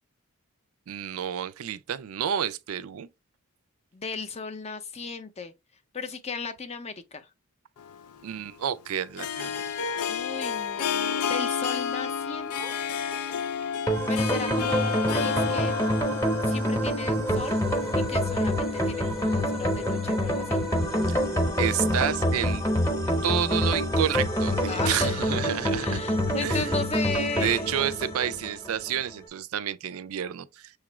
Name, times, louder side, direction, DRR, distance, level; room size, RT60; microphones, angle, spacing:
voice 1, 0.9-3.1 8.2-9.5 21.6-22.7 23.2-26.0 26.4-26.7 27.3-30.7, right 9 dB, 70° right, 0.4 m, -30 dB
voice 2, 3.9-5.5 5.9-7.3 10.1-12.7 14.1-15.7 16.5-17.6 17.9-20.6 24.7-25.2 25.7-27.7, left 4 dB, 30° left, 0.5 m, -35 dB
Harp, 7.8-18.2, left 7 dB, 85° left, 0.4 m, -31 dB
sound 1, 13.9-28.9, equal, 15° left, 0.8 m, -26 dB
6.6 x 2.4 x 3.0 m
head